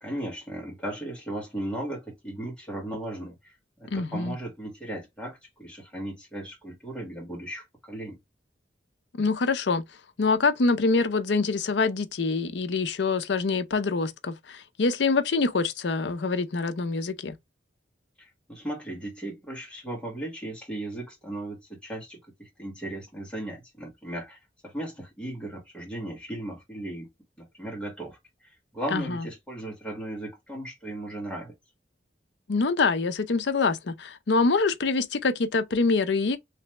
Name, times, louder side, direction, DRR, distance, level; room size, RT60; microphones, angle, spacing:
voice 1, 0.0-8.2 18.2-27.1 27.4-31.5, right 1 dB, 5° left, 1.6 m, -37 dB
voice 2, 3.9-4.3 9.1-9.8 10.2-17.4 28.9-29.2 32.5-36.4, left 4 dB, 70° left, 0.6 m, -25 dB
3.3 x 3.1 x 3.1 m
head